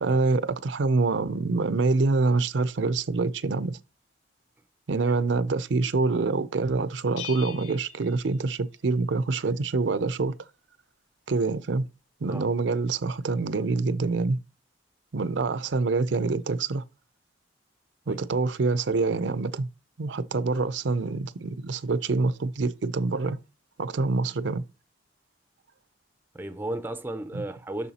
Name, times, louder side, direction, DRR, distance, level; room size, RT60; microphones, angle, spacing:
voice 1, 0.0-3.8 4.9-10.3 11.3-11.9 12.2-14.4 15.1-16.8 18.1-19.7 20.0-23.4 23.8-24.6 27.3-27.4, right 3 dB, 75° right, 0.5 m, -26 dB
Bell, 7.2-9.0, left 9 dB, 75° left, 0.7 m, -42 dB
voice 2, 26.3-27.9, right 1 dB, 10° right, 0.4 m, -34 dB
6.9 x 6.4 x 2.8 m
head